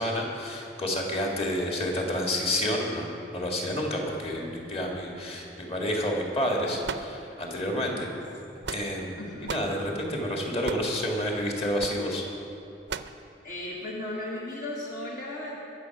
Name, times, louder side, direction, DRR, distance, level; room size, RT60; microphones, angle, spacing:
voice 1, 0.0-8.1 8.7-12.2, left 1 dB, 35° left, 0 dB, 2.1 m, -29 dB
sound 1, 6.8-7.6 8.4-9.1 9.5-9.8 10.6-11.0 11.8-12.0 12.9-13.2, right 5 dB, 75° right, 0.5 m, -36 dB
voice 2, 7.8-8.1 9.2-9.7 10.1-10.2 13.4-15.6, left 1 dB, 50° left, -3 dB, 1.4 m, -36 dB
22.0 x 7.7 x 6.0 m, 2.9 s
head